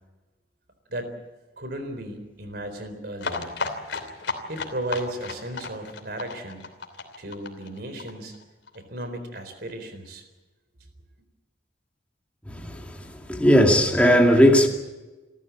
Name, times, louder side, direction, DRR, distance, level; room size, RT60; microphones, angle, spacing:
voice 1, 1.6-3.5 4.5-6.7 7.2-8.4 8.7-10.2, right 1 dB, 60° right, 4.0 m, -35 dB
sound 1, 3.2-8.8 9.0-9.1 9.4-9.5 9.7-9.8, left 4 dB, 80° left, 3.0 m, -33 dB
voice 2, 12.5-12.9 13.3-14.7, equal, 5° left, 2.4 m, -17 dB
28.0 x 14.0 x 8.6 m
head